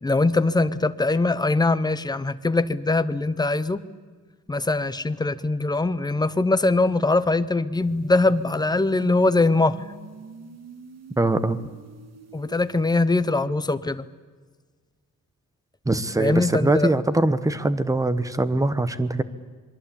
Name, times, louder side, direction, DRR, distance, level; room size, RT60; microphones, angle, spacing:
voice 1, 0.0-3.8 4.5-9.8 12.3-14.0 16.2-16.9, left 2 dB, 10° left, 12 dB, 0.8 m, -22 dB
sound 1, 7.8-12.8, right 5 dB, 50° right, 2.0 m, -45 dB
voice 2, 11.2-11.6 15.9-19.2, right 2 dB, 10° right, 13 dB, 1.0 m, -22 dB
27.5 x 22.5 x 8.6 m, 1.5 s
wide cardioid pair, 160°, 32 cm